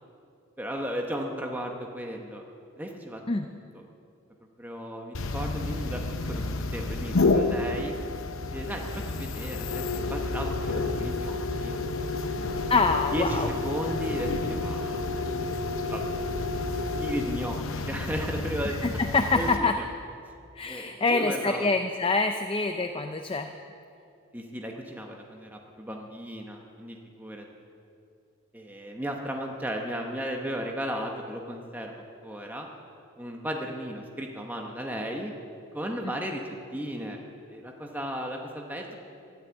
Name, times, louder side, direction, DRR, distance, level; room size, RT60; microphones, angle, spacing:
voice 1, 0.6-2.4 2.8-3.2 3.7-3.8 4.6-6.0 6.3-8.0 8.5-8.8 9.1-11.7 12.3-12.5 13.1-15.0 15.9-16.1 17.0-18.8 19.3-19.5 19.8-19.9 20.7-21.7 24.3-27.4 28.5-32.7 33.2-35.3 35.7-36.4 36.7-38.9, equal, 10° right, 1 dB, 1.1 m, -35 dB
sound 1, 5.1-19.6, left 3 dB, 70° left, 0.8 m, -30 dB
voice 2, 12.7-13.5 18.8-19.8 20.6-23.5, left 3 dB, 25° left, 6 dB, 0.5 m, -25 dB
13.5 x 11.5 x 8.2 m, 2.5 s
head